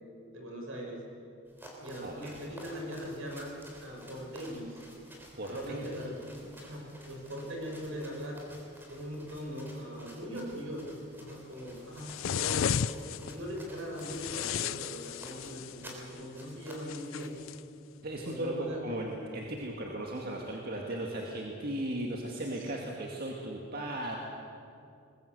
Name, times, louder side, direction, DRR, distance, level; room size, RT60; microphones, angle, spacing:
voice 1, 0.3-1.0 1.8-3.5 3.8-4.8 5.4-8.4 8.9-12.8 13.2-17.3 18.2-18.8 22.5-22.6, equal, 70° right, 0 dB, 6.1 m, -40 dB
sound 1, 1.5-17.5, equal, 10° right, 3.7 m, -52 dB
voice 2, 2.0-2.3 5.4-5.9 18.0-24.2, right 1 dB, 45° right, -1 dB, 2.1 m, -36 dB
sound 2, 12.0-13.3 14.0-15.8 16.9-17.6, left 8 dB, 70° left, 0.5 m, -33 dB
21.5 x 21.0 x 8.1 m, 2.6 s
head